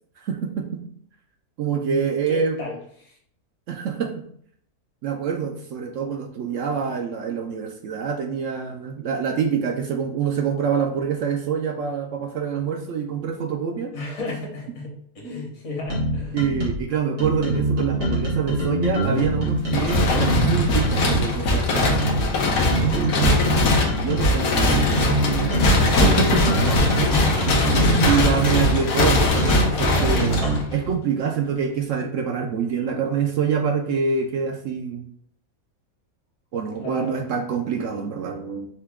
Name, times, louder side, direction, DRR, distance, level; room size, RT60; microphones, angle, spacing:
voice 1, 0.2-0.8 1.6-2.6 3.7-4.2 5.0-13.9 16.3-23.4 24.0-25.1 25.5-26.6 27.4-30.4 30.7-35.1 36.5-38.7, right 6 dB, 70° right, 4 dB, 0.8 m, -26 dB
voice 2, 1.9-3.2 13.9-16.4 36.8-37.2, left 2 dB, 65° left, -1 dB, 1.6 m, -35 dB
sound 1, 15.9-16.8 17.2-21.3 21.8-24.3 24.7-30.6, right 2 dB, 90° right, 2.1 m, -24 dB
sound 2, 19.7-30.9, left 2 dB, 85° left, 1.3 m, -21 dB
5.5 x 2.2 x 3.5 m, 0.62 s
omnidirectional pair, 1.5 m